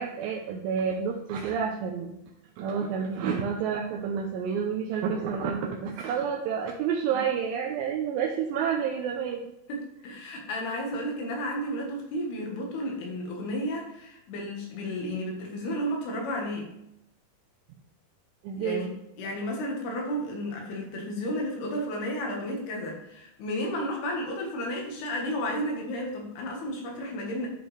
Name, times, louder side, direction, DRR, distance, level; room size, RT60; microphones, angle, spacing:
voice 1, 0.0-2.1 2.6-9.5 18.4-18.9, right 7 dB, 80° right, 0 dB, 2.3 m, -29 dB
voice 2, 9.7-16.7 18.6-18.9 19.2-27.5, equal, 90° left, 0 dB, 3.6 m, -32 dB
11.0 x 5.1 x 3.3 m, 0.84 s
omnidirectional pair, 4.4 m